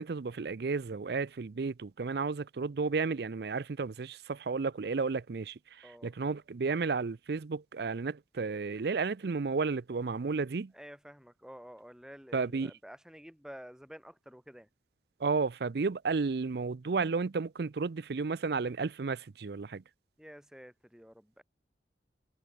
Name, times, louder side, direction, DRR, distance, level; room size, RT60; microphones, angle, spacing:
voice 1, 0.0-5.5 6.0-10.7 12.3-12.7 15.2-19.8, right 4 dB, 60° right, 0.5 m, -32 dB
voice 2, 10.7-14.7 20.2-21.4, equal, 5° right, 2.5 m, -50 dB
head